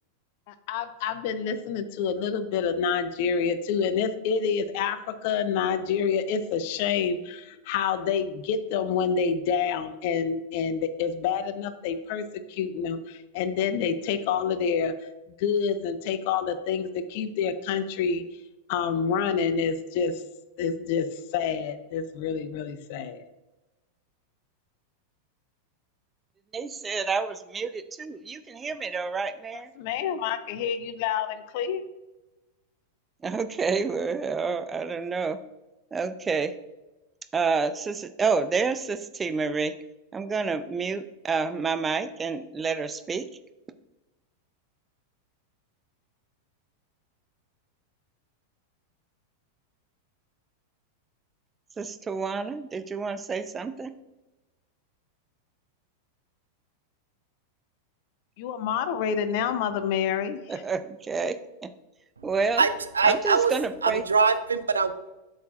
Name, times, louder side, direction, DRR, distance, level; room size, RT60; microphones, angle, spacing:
voice 1, 0.5-14.9 15.4-18.2 18.7-20.2 20.6-23.3 29.5-31.8 58.4-60.4, left 6 dB, 50° left, 12 dB, 0.5 m, -28 dB
voice 2, 26.5-29.7 33.2-35.4 35.9-36.5 37.3-39.7 40.1-43.3 51.8-53.9 60.5-61.7 62.2-62.7 63.0-64.0, right 4 dB, 15° right, 12 dB, 0.4 m, -29 dB
voice 3, 62.9-63.5 63.8-64.9, right 5 dB, 75° right, 11 dB, 0.4 m, -22 dB
8.0 x 6.4 x 2.4 m, 1.0 s
figure-of-eight pair, 90°, 0 cm